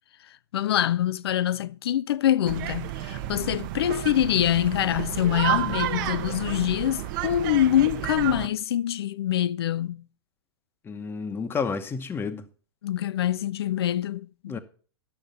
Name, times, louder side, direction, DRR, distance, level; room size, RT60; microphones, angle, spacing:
voice 1, 0.5-10.0 12.8-14.6, left 11 dB, 70° left, 0.5 m, -25 dB
sound 1, 2.5-8.5, right 13 dB, 50° right, 0.9 m, -31 dB
voice 2, 10.8-12.5 14.5-14.6, left 5 dB, 15° left, 1.0 m, -30 dB
11.5 x 6.5 x 5.5 m
hypercardioid pair, 120°, 13 cm